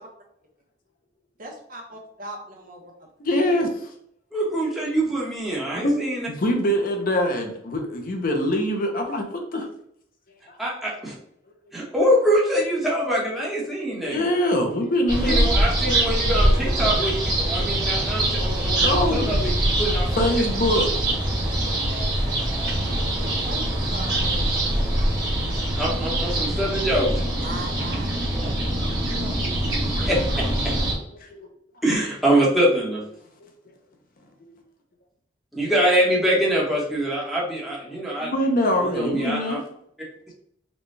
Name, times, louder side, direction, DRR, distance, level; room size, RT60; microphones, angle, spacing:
voice 1, 1.4-3.1 20.4-20.5 21.4-22.5 23.1-24.8 27.4-29.5, right 1 dB, 50° right, 0 dB, 0.9 m, -40 dB
voice 2, 3.2-3.9 5.7-5.9 6.3-9.7 10.5-10.6 14.1-15.4 18.8-19.4 20.1-20.9 25.1-25.2 25.5-25.6 31.2-31.5 34.4-34.5 38.2-39.6, left 1 dB, 50° left, 3 dB, 0.6 m, -24 dB
voice 3, 4.3-6.3 10.6-11.1 11.7-14.3 15.2-20.1 20.8-20.9 25.6-27.3 30.0-30.8 31.8-33.0 35.5-38.3 38.8-39.6, right 1 dB, ahead, -5 dB, 1.0 m, -24 dB
sound 1, 15.1-30.9, right 1 dB, 20° right, 1.3 m, -23 dB
4.1 x 2.3 x 3.2 m, 0.69 s
head